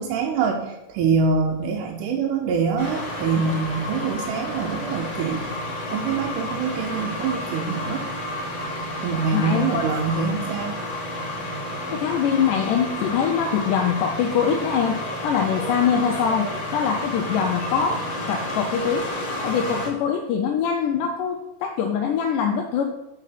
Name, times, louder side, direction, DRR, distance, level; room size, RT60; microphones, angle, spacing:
voice 1, 0.0-5.4 5.9-8.0 9.0-10.8, right 5 dB, 80° right, 0 dB, 2.0 m, -24 dB
sound 1, 2.8-19.9, left 1 dB, 60° left, 1.0 m, -31 dB
voice 2, 9.3-9.8 11.9-15.0 15.2-19.0 19.4-22.8, left 7 dB, 80° left, 2 dB, 2.0 m, -23 dB
6.5 x 3.6 x 5.7 m, 0.95 s
omnidirectional pair, 4.0 m